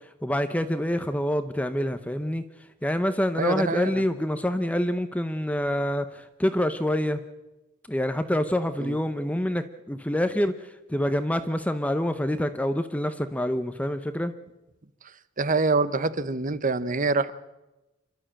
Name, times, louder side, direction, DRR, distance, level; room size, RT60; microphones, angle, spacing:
voice 1, 0.2-2.4 2.8-7.2 7.9-14.3, left 1 dB, 5° left, 10 dB, 0.8 m, -26 dB
voice 2, 3.4-3.9 8.8-9.0 15.4-17.3, right 3 dB, 45° right, 15 dB, 0.9 m, -25 dB
27.5 x 12.5 x 8.8 m, 1.0 s
head